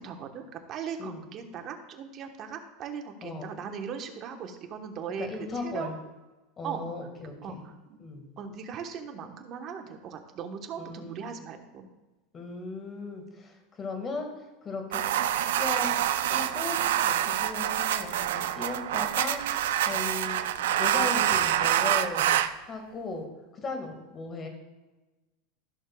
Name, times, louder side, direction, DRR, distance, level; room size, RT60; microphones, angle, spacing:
voice 1, 0.0-5.3 5.5-5.9 6.6-6.8 7.4-7.7 8.4-11.9, right 7 dB, 40° right, 4 dB, 1.2 m, -38 dB
voice 2, 5.2-6.0 6.6-7.7 8.0-8.2 10.8-11.2 12.3-15.0 15.6-15.9 16.3-16.8 17.0-22.3 22.6-24.5, left 3 dB, 25° left, 4 dB, 1.8 m, -37 dB
sound 1, 14.9-22.5, right 11 dB, 85° right, 0.5 m, -26 dB
14.5 x 6.4 x 2.3 m, 1.1 s
supercardioid pair, 125°, 0 cm